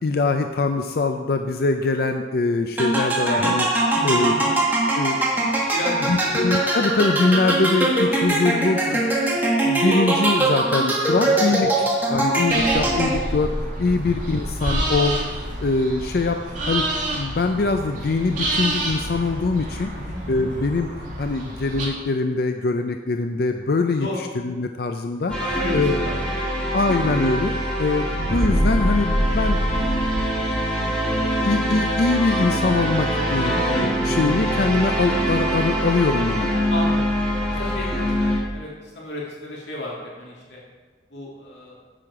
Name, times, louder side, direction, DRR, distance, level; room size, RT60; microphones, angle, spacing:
voice 1, 0.0-3.7 4.0-4.3 4.9-5.2 6.1-9.1 9.6-13.5 13.8-16.8 17.1-19.9 20.3-20.9 21.2-25.4 25.7-26.0 26.7-29.6 30.5-31.0 31.4-36.6, left 3 dB, 55° left, 6 dB, 0.5 m, -23 dB
sound 1, 2.8-13.4, right 2 dB, 10° right, 1.5 m, -21 dB
voice 2, 3.9-4.5 5.7-6.5 11.2-11.4 14.0-14.1 19.9-20.2 24.0-24.2 25.4-27.0 33.4-33.6 36.7-37.1 37.5-40.6 41.1-41.8, left 1 dB, 80° left, -4 dB, 1.9 m, -33 dB
sound 2, 12.5-21.9, right 1 dB, 45° right, 2.6 m, -28 dB
sound 3, 25.3-38.4, equal, 5° left, 2.3 m, -23 dB
10.0 x 7.7 x 4.8 m, 1.4 s
head